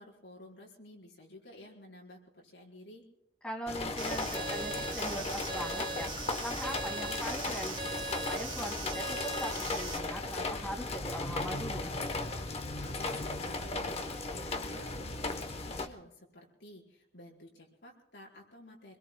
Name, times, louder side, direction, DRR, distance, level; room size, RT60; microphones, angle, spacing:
voice 1, 0.0-3.0 12.8-19.0, left 1 dB, 65° left, -2 dB, 4.6 m, -53 dB
voice 2, 3.4-11.9, equal, 5° left, 2 dB, 2.1 m, -41 dB
sound 1, 3.7-15.9, left 2 dB, 35° left, 0.9 m, -36 dB
sound 2, 4.0-10.0, right 3 dB, 25° right, 2.3 m, -40 dB
26.5 x 21.5 x 2.2 m, 0.85 s
head